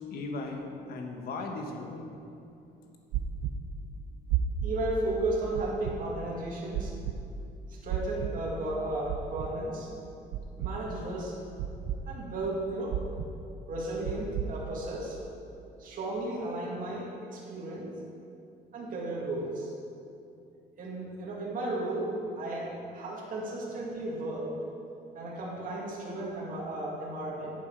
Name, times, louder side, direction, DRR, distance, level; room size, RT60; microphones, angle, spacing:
voice 1, 0.0-2.1, left 3 dB, 65° left, 3 dB, 1.5 m, -37 dB
sound 1, 3.1-3.5 4.3-4.7 5.5-5.9 6.7-7.1 7.9-8.3 9.1-9.5 10.3-10.7 11.6-12.0 12.9-13.3 14.1-14.5, right 12 dB, 80° right, 0.7 m, -31 dB
voice 2, 4.6-6.9 7.7-9.9 10.6-11.3 12.1-13.0 13.7-15.2 15.8-17.9 18.7-19.7 20.8-24.5 25.1-27.5, right 2 dB, 55° right, -4 dB, 2.4 m, -34 dB
11.0 x 8.3 x 4.8 m, 2.6 s
cardioid pair, 110°, 17 cm